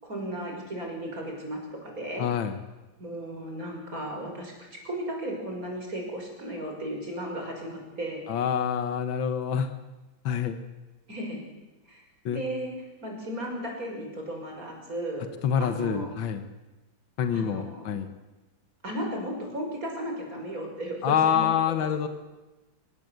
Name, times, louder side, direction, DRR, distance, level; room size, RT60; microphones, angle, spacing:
voice 1, 0.0-2.3 3.0-8.3 11.1-11.4 11.9-12.0 12.3-12.7 13.0-15.3 15.6-16.1 17.3-17.9 18.8-21.8, right 1 dB, 45° right, 1 dB, 6.4 m, -35 dB
voice 2, 2.2-2.6 8.3-9.7 10.3-10.6 12.3-12.4 15.4-16.4 17.2-18.1 21.0-22.1, left 8 dB, 80° left, 9 dB, 2.0 m, -26 dB
25.0 x 19.5 x 8.1 m, 1.1 s
omnidirectional pair, 2.1 m